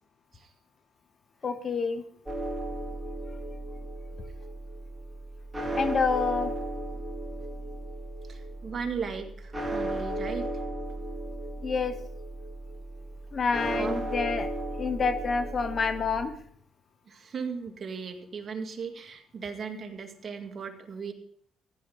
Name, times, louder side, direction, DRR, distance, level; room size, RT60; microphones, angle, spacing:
voice 1, 1.4-2.0 5.8-6.5 11.6-12.0 13.3-14.5 14.8-16.3, left 5 dB, 40° left, 10 dB, 1.2 m, -28 dB
sound 1, 2.3-16.3, right 1 dB, 20° right, 2.5 m, -35 dB
voice 2, 8.3-10.5 13.8-14.1 17.1-21.1, right 5 dB, 45° right, 5 dB, 2.1 m, -37 dB
15.5 x 11.0 x 3.8 m, 0.64 s
cardioid pair, 90°, 0 cm